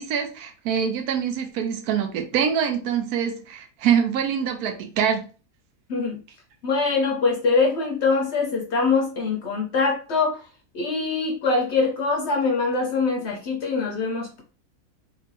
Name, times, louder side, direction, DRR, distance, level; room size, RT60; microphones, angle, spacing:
voice 1, 0.0-5.2, right 8 dB, 85° right, 5 dB, 1.1 m, -24 dB
voice 2, 6.6-10.4 10.7-14.4, left 4 dB, 65° left, 2 dB, 0.7 m, -23 dB
2.9 x 2.6 x 2.6 m, 0.35 s
omnidirectional pair, 1.6 m